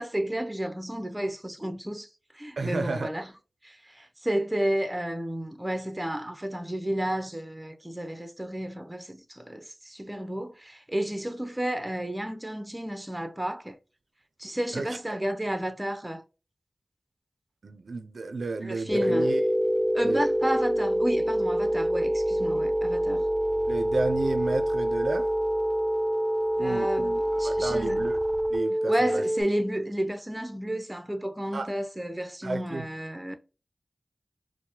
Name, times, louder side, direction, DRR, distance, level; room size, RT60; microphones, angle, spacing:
voice 1, 0.0-2.1 2.3-3.3 3.6-13.8 14.4-16.2 18.6-19.3 19.9-23.3 26.6-28.0 28.9-33.4, right 1 dB, 15° right, 0.6 m, -32 dB
voice 2, 2.6-3.1 14.7-14.9 17.6-19.4 20.0-20.3 23.7-25.3 26.6-28.2 28.5-29.2 31.5-31.7 32.4-32.9, right 3 dB, 90° right, 0.4 m, -32 dB
sound 1, 18.9-29.4, equal, 20° left, 1.1 m, -26 dB
4.6 x 2.1 x 2.7 m
wide cardioid pair, 65°, 0 cm